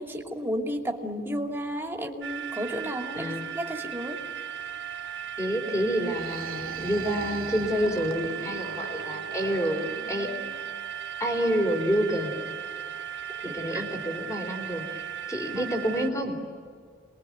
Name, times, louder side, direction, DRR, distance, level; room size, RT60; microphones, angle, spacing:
voice 1, 0.0-4.2 13.4-13.8 15.6-15.7, equal, 10° right, 2 dB, 2.7 m, -33 dB
sound 1, 2.2-16.1, right 9 dB, 60° right, 1.8 m, -37 dB
voice 2, 3.1-3.4 5.4-10.3 11.2-12.4 13.4-16.4, equal, 15° left, 4 dB, 3.9 m, -28 dB
sound 2, 5.9-10.7, right 4 dB, 80° right, 1.1 m, -41 dB
29.0 x 22.0 x 9.4 m, 2.1 s
head